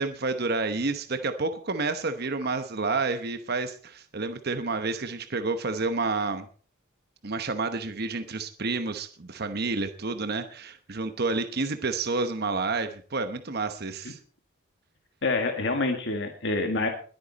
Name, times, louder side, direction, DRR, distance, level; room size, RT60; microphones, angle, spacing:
voice 1, 0.0-6.5 7.2-14.2, right 3 dB, 50° right, 9 dB, 1.0 m, -29 dB
voice 2, 15.2-16.9, left 3 dB, 60° left, 4 dB, 1.8 m, -27 dB
21.0 x 9.3 x 4.1 m, 0.41 s
head